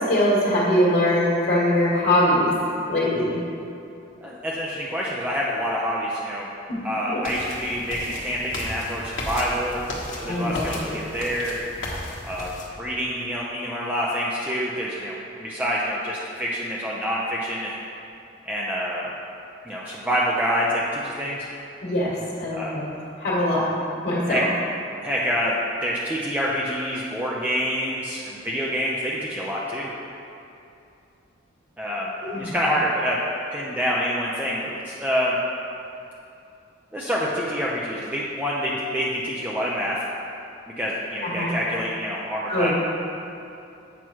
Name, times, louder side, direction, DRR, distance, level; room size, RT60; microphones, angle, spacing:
voice 1, 0.1-2.5 2.9-3.3 6.7-6.8 10.3-10.6 21.8-22.9 23.2-23.6 24.0-24.4 32.2-32.6 41.2-41.5 42.5-42.7, left 1 dB, 55° left, -9 dB, 1.8 m, -22 dB
voice 2, 4.2-6.5 6.8-9.8 10.1-11.6 12.2-12.5 12.8-17.8 18.4-19.1 19.6-21.5 22.5-22.8 24.3-24.4 25.0-29.9 31.8-32.1 32.4-33.2 33.5-35.4 36.9-40.0 40.8-42.7, equal, 10° right, -5 dB, 0.6 m, -27 dB
sound 1, 7.2-12.6, left 1 dB, 75° left, 1.4 m, -35 dB
8.1 x 5.9 x 4.6 m, 2.7 s
head